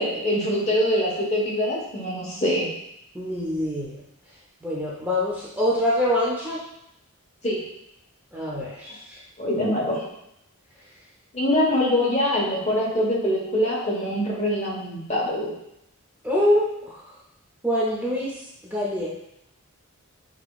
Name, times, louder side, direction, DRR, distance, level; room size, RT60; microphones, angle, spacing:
voice 1, 0.0-2.7 7.4-7.6 9.4-10.1 11.3-15.5, left 1 dB, 30° left, -4 dB, 1.1 m, -24 dB
voice 2, 3.1-4.0 4.6-6.6 8.3-9.2 16.2-17.0 17.6-18.3 18.6-19.1, left 1 dB, 10° right, -6 dB, 0.6 m, -25 dB
5.9 x 2.9 x 2.3 m, 0.81 s
head